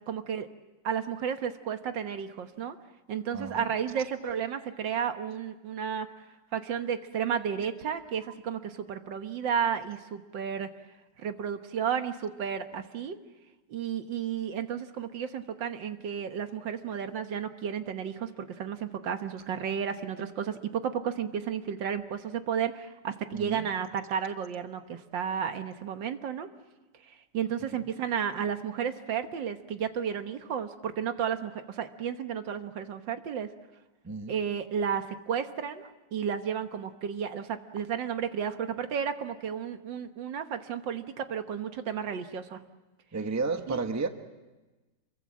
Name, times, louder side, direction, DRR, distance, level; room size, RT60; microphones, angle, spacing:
voice 1, 0.1-0.5 0.8-2.8 3.1-6.1 6.5-10.7 11.2-13.2 13.7-26.5 27.1-33.5 34.3-42.6 43.7-43.8, right 8 dB, 75° right, 8 dB, 1.9 m, -32 dB
voice 2, 3.3-3.7 4.0-4.4 23.3-23.7 34.0-34.4 43.1-44.1, right 4 dB, 10° right, 7 dB, 0.9 m, -33 dB
27.0 x 23.0 x 7.5 m, 1.1 s
omnidirectional pair, 2.0 m